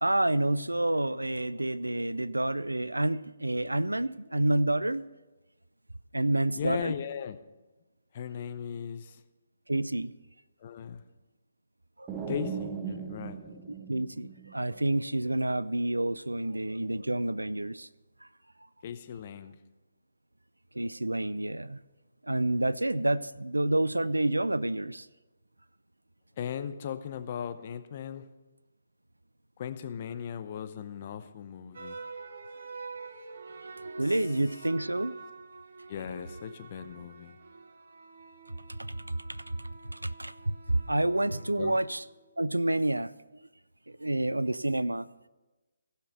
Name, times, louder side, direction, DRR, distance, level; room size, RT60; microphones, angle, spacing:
voice 1, 0.0-5.0 6.1-7.0 9.7-10.1 12.0-12.2 13.7-17.9 18.2-18.3 20.7-21.8 22.2-25.1 34.0-35.2 38.7-39.0 39.3-42.0 42.4-43.5 43.9-45.1, right 1 dB, 85° right, 17 dB, 0.4 m, -29 dB
voice 2, 6.6-7.4 8.1-9.2 10.6-11.0 12.3-13.4 18.8-19.6 26.4-28.2 29.6-32.0 35.9-37.4 41.6-41.8, left 8 dB, 35° left, 10 dB, 0.7 m, -37 dB
sound 1, 12.1-14.9, right 6 dB, 15° right, 0.9 m, -38 dB
sound 2, 31.7-42.1, right 4 dB, 55° right, 0.8 m, -46 dB
15.5 x 5.7 x 6.5 m, 1.1 s
figure-of-eight pair, 140°, 0 cm